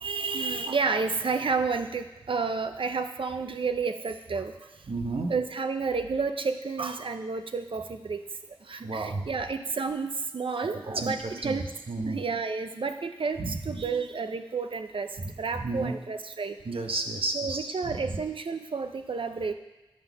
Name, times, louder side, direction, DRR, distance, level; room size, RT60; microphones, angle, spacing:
voice 1, 0.0-4.5 5.3-8.2 8.7-11.6 12.1-15.1 15.4-16.6 17.3-19.5, right 4 dB, 70° right, 7 dB, 0.5 m, -30 dB
voice 2, 4.9-5.3 8.8-9.2 10.6-11.1 11.4-11.5 11.9-12.2 13.4-13.5 15.6-15.9 16.7-17.7, right 3 dB, 85° right, 4 dB, 0.9 m, -31 dB
10.0 x 3.9 x 6.9 m, 1.1 s
wide cardioid pair, 60°, 9 cm